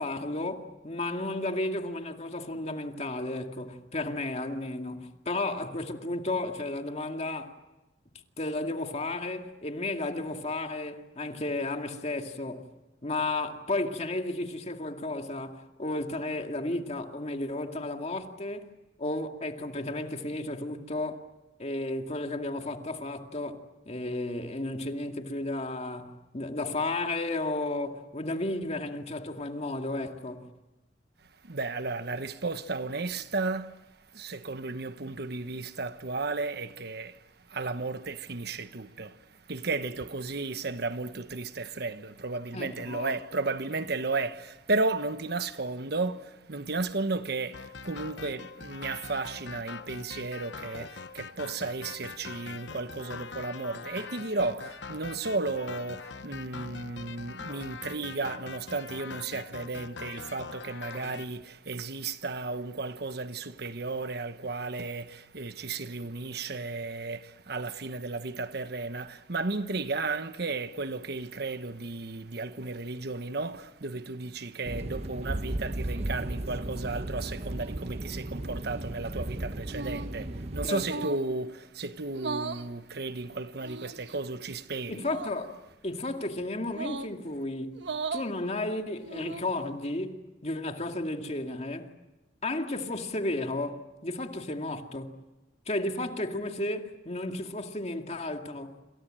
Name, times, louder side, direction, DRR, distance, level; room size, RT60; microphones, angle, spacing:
voice 1, 0.0-7.5 8.4-12.7 13.0-18.7 19.0-21.2 21.6-30.5 42.5-43.1 80.6-81.0 84.9-85.5 85.8-87.8 88.1-91.9 92.4-95.1 95.7-98.8, left 2 dB, 35° left, 2.2 m, -33 dB
voice 2, 31.4-33.7 34.1-37.2 37.5-39.2 39.5-85.0, right 3 dB, 60° right, 1.2 m, -34 dB
sound 1, 47.5-61.2, left 5 dB, 85° left, 1.0 m, -43 dB
sound 2, 74.7-80.7, right 1 dB, 35° right, 0.9 m, -35 dB
sound 3, 79.7-80.2 80.8-81.3 82.1-82.7 83.6-84.2 85.0-85.4 86.7-87.2 87.8-88.3 89.0-89.6, right 4 dB, 80° right, 1.3 m, -37 dB
28.0 x 27.5 x 7.6 m
head